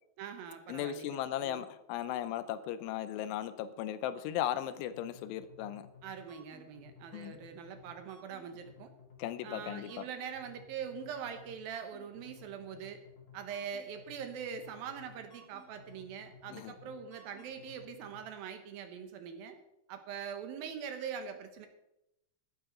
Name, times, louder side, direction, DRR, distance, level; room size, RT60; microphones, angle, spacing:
voice 1, 0.2-1.7 6.0-8.9 9.4-13.0 13.3-19.6 19.9-21.7, right 7 dB, 75° right, 7 dB, 2.2 m, -43 dB
voice 2, 0.7-5.9 7.1-7.4 9.2-10.0 16.5-16.7, left 11 dB, 85° left, 13 dB, 3.2 m, -37 dB
sound 1, 4.7-18.2, left 5 dB, 35° left, 2.0 m, -57 dB
14.0 x 12.5 x 3.9 m, 0.87 s
omnidirectional pair, 5.4 m